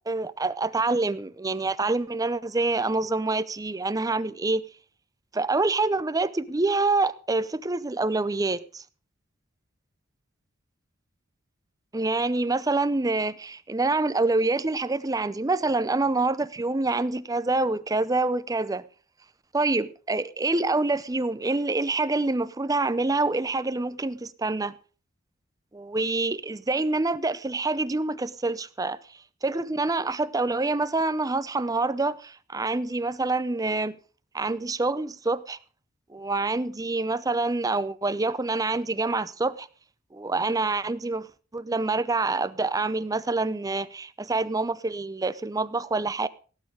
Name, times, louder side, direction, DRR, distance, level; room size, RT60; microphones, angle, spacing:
voice 1, 0.1-4.6 5.3-8.8 11.9-18.8 19.5-24.8 25.7-29.0 29.4-34.0 34.3-35.6 36.1-39.7 40.1-41.3 41.5-46.3, right 3 dB, 15° right, 0.6 m, -26 dB
17.0 x 8.7 x 5.0 m
head